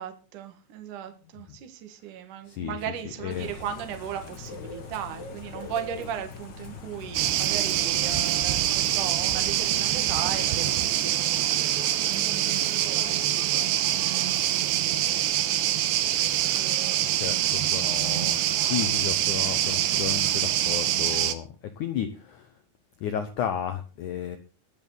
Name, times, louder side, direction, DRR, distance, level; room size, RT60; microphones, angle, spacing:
voice 1, 0.0-14.1 16.5-17.1 21.1-21.2, right 9 dB, 55° right, 2.9 m, -37 dB
voice 2, 2.5-2.8 3.2-3.5 17.0-22.6 23.0-24.4, left 9 dB, 90° left, 1.7 m, -33 dB
Bird / Rain, 3.3-11.4, left 4 dB, 45° left, 1.5 m, -42 dB
sound 1, 7.1-21.3, right 12 dB, 80° right, 3.3 m, -25 dB
22.0 x 7.3 x 4.0 m
omnidirectional pair, 5.1 m